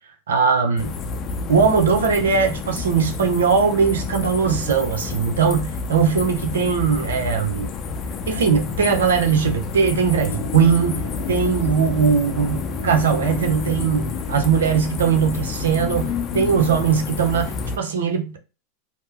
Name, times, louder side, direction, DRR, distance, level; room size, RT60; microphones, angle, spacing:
voice 1, 0.3-0.9 1.5-7.7 8.3-18.4, right 6 dB, 90° right, 0.7 m, -20 dB
sound 1, 0.8-17.8, left 4 dB, 40° left, 0.5 m, -29 dB
sound 2, 10.3-16.6, left 6 dB, 70° left, 0.8 m, -35 dB
2.8 x 2.1 x 3.4 m
hypercardioid pair, 110°, 0 cm